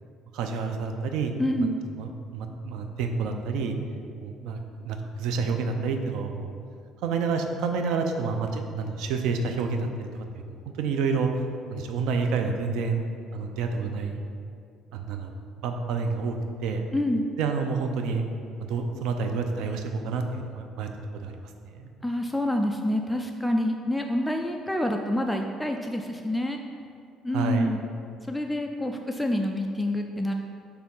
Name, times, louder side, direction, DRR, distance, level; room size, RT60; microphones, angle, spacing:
voice 1, 0.3-1.7 2.0-3.8 4.2-6.5 7.0-11.3 11.7-13.0 13.3-14.2 14.9-15.3 15.6-16.4 16.6-16.8 17.4-18.2 18.7-21.9 27.3-27.7, right 4 dB, 80° right, 5 dB, 0.6 m, -29 dB
voice 2, 1.4-1.8 16.9-17.3 22.0-26.6 27.2-27.8 28.3-30.3, left 1 dB, ahead, 2 dB, 0.3 m, -27 dB
6.6 x 3.4 x 5.5 m, 2.4 s
cardioid pair, 125°, 0 cm